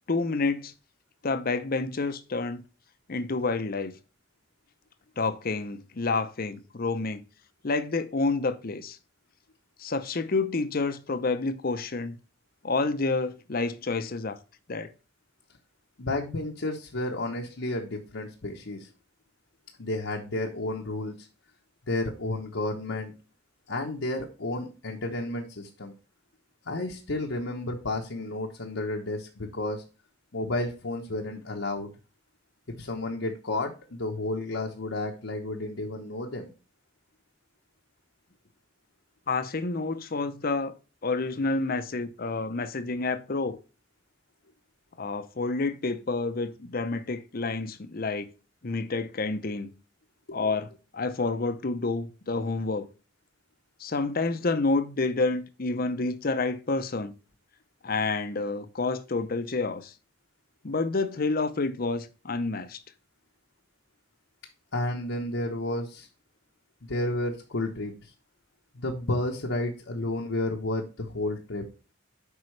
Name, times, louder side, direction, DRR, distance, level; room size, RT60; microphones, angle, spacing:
voice 1, 0.1-0.7 1.2-2.6 3.1-4.0 5.2-7.2 7.6-9.0 9.8-12.2 12.6-14.4 14.7-14.9 39.3-40.7 41.0-43.6 45.0-48.3 48.6-49.7 50.3-52.9 53.8-57.1 57.8-59.9 60.6-62.8, left 3 dB, 50° left, 0.7 m, -29 dB
voice 2, 16.0-18.9 19.8-21.3 21.9-23.1 23.7-25.9 26.7-29.8 30.3-31.9 32.7-36.5 50.3-50.4 64.7-66.1 66.8-68.1 68.7-71.6, left 2 dB, 75° left, 1.0 m, -31 dB
8.2 x 5.5 x 3.2 m
head